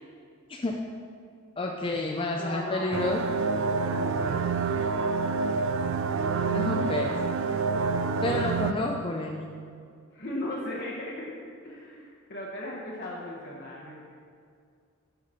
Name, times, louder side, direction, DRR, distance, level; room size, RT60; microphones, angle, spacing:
voice 1, 1.6-3.2 6.5-7.2 8.2-9.5, left 2 dB, 25° left, 0 dB, 0.4 m, -30 dB
voice 2, 2.4-2.9 3.8-4.4 7.6-7.9 10.1-11.3 11.6-13.9, left 1 dB, 50° left, -4 dB, 1.1 m, -37 dB
sound 1, 2.9-8.7, right 4 dB, 55° right, 0.4 m, -27 dB
7.9 x 5.8 x 5.6 m, 2.3 s
head